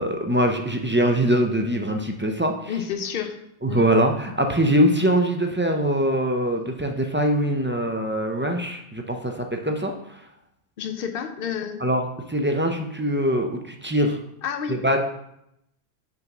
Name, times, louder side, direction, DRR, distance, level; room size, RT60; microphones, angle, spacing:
voice 1, 0.0-2.7 3.6-9.9 11.8-12.0 12.3-14.2 14.8-15.0, equal, 15° right, 3 dB, 0.4 m, -22 dB
voice 2, 2.7-3.4 3.7-3.8 10.8-11.8 14.4-14.8, left 8 dB, 60° left, 6 dB, 0.9 m, -29 dB
5.6 x 4.0 x 5.8 m, 0.78 s
omnidirectional pair, 1.1 m